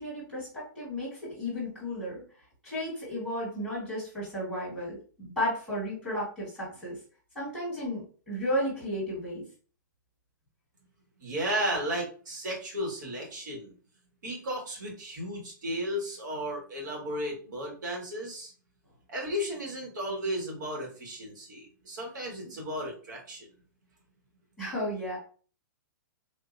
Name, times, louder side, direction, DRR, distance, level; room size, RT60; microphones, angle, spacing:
voice 1, 0.0-2.2 2.6-7.0 7.3-9.4 24.6-25.2, equal, 5° right, -9 dB, 1.7 m, -33 dB
voice 2, 11.2-13.7 14.2-18.5 19.1-23.5, equal, 60° right, 0 dB, 1.7 m, -34 dB
3.7 x 2.7 x 2.6 m, 0.40 s
hypercardioid pair, 170°, 11 cm